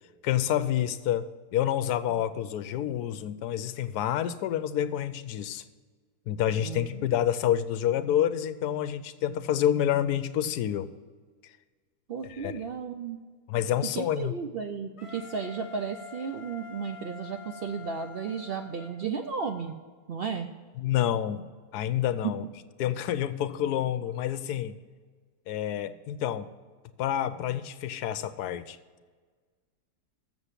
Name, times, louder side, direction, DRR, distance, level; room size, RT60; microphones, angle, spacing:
voice 1, 0.2-5.6 6.3-10.9 12.2-12.5 13.5-14.3 20.8-21.4 21.7-22.4 22.8-24.8 25.5-26.5 27.0-28.8, left 11 dB, 80° left, 13 dB, 1.1 m, -28 dB
voice 2, 6.6-7.0 12.1-13.2 14.0-19.8 20.1-20.5 22.2-22.3, right 6 dB, 75° right, 6 dB, 0.5 m, -34 dB
Wind instrument woodwind instrument, 15.0-19.7, left 5 dB, 30° left, 0.7 m, -47 dB
7.3 x 7.0 x 8.2 m, 1.5 s
omnidirectional pair, 1.7 m